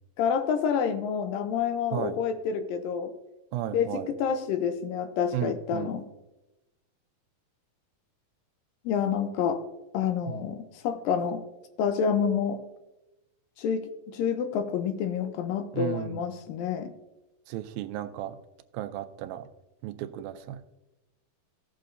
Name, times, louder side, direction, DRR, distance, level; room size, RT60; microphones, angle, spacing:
voice 1, 0.2-3.1 3.7-6.0 8.9-9.6 9.9-11.4 11.8-12.6 13.6-13.9 14.1-16.9, left 7 dB, 80° left, 8 dB, 2.3 m, -28 dB
voice 2, 3.5-4.1 5.3-5.9 10.3-10.5 15.7-16.3 17.5-18.4 18.7-19.5 19.8-20.6, right 13 dB, 85° right, 10 dB, 2.3 m, -34 dB
16.5 x 6.7 x 2.6 m, 0.98 s
omnidirectional pair, 4.2 m